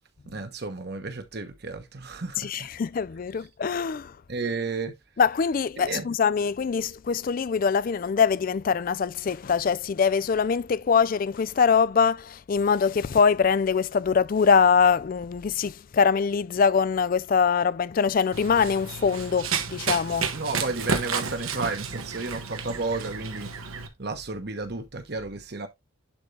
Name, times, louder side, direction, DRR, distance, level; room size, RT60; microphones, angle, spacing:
voice 1, 0.3-2.7 4.3-4.9 5.8-6.1 20.3-23.5 24.0-25.7, right 3 dB, 50° right, 1.2 m, -32 dB
voice 2, 2.4-4.2 5.2-20.3, left 6 dB, 40° left, 0.3 m, -23 dB
Run, 18.3-23.9, right 5 dB, 85° right, 1.5 m, -31 dB
11.0 x 3.9 x 3.3 m
head